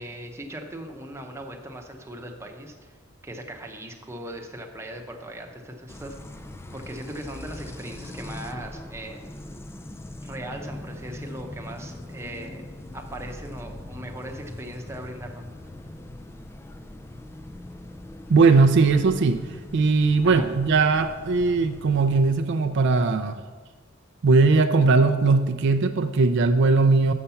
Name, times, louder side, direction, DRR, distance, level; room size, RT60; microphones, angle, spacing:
voice 1, 0.0-2.9 3.2-6.2 6.7-9.2 10.2-12.6 12.9-15.4 20.2-20.5, right 1 dB, 15° right, 2 dB, 0.8 m, -39 dB
sound 1, 5.9-23.1, left 1 dB, 10° left, 0.3 m, -41 dB
voice 2, 18.3-19.4 19.7-23.4 24.2-27.1, right 4 dB, 60° right, 7 dB, 0.4 m, -19 dB
6.5 x 5.7 x 6.9 m, 1.4 s
head